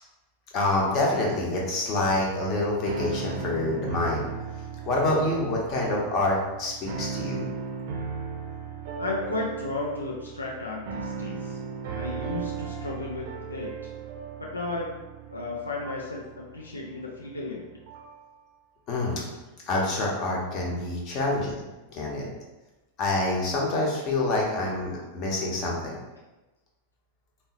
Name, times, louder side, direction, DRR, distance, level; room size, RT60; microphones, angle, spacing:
voice 1, 0.5-4.3 4.9-7.5 18.9-19.2 19.7-21.5 21.9-22.3 23.0-26.0, left 2 dB, 35° left, -2 dB, 0.8 m, -27 dB
sound 1, 2.0-18.2, right 5 dB, 50° right, 0.5 m, -37 dB
voice 2, 9.0-11.6 11.9-13.9 14.4-14.9 15.3-17.7, left 3 dB, 80° left, -3 dB, 0.4 m, -34 dB
3.6 x 2.0 x 2.8 m, 1.1 s
figure-of-eight pair, 90°, 0 cm